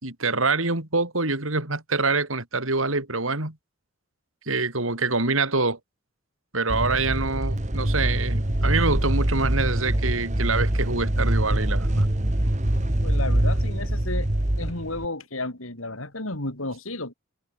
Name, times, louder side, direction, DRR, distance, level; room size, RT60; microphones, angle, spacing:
voice 1, 0.0-3.6 4.5-5.8 6.5-12.1, right 3 dB, 85° right, 4.5 m, -25 dB
sound 1, 6.7-15.1, right 1 dB, 35° right, 1.6 m, -24 dB
voice 2, 13.0-14.3 14.6-17.1, left 2 dB, 90° left, 6.2 m, -32 dB
head